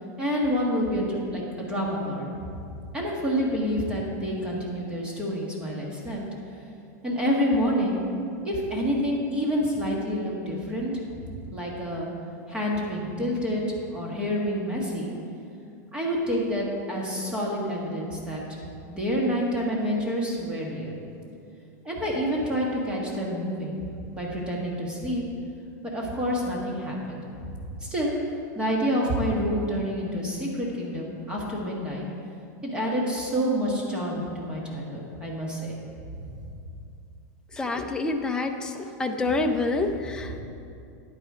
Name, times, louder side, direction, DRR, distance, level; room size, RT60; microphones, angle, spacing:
voice 1, 0.2-2.5 2.9-6.2 7.0-8.0 8.4-12.1 12.5-13.6 13.9-15.1 15.9-18.4 18.9-21.0 21.8-23.9 24.1-25.2 25.9-28.1 28.5-32.0 32.6-35.8 36.2-36.4 40.2-40.4, equal, 10° right, -3 dB, 1.7 m, -28 dB
voice 2, 37.6-38.7 39.0-40.4, left 3 dB, 10° left, 4 dB, 0.5 m, -27 dB
10.5 x 9.1 x 5.0 m, 2.5 s
supercardioid pair, 160°, 9 cm